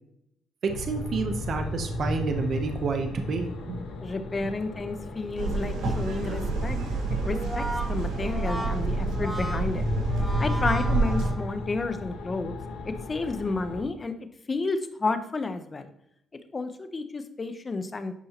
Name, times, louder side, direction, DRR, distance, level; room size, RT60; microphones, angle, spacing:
voice 1, 0.6-3.8, right 4 dB, 55° right, 5 dB, 0.8 m, -29 dB
sound 1, 0.7-13.8, left 2 dB, 85° left, 1.3 m, -34 dB
voice 2, 4.0-6.8 7.2-9.9 10.4-12.5 13.1-14.1 14.5-15.9 16.5-18.1, left 3 dB, 30° left, 9 dB, 0.9 m, -31 dB
sound 2, 5.4-11.3, right 3 dB, 85° right, 2.5 m, -29 dB
Brass instrument, 7.2-11.7, right 1 dB, ahead, 1.2 m, -36 dB
10.0 x 5.4 x 2.9 m, 0.76 s
cardioid pair, 90°, 0 cm